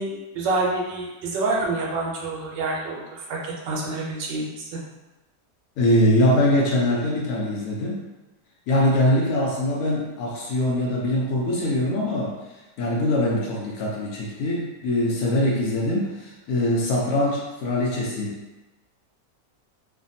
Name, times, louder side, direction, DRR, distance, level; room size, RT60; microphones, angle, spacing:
voice 1, 0.0-4.8, right 2 dB, 90° right, -3 dB, 1.3 m, -27 dB
voice 2, 5.8-8.0 8.7-12.4 12.8-18.4, left 1 dB, 70° left, -3 dB, 0.9 m, -22 dB
3.2 x 2.2 x 2.6 m, 1.1 s
omnidirectional pair, 1.9 m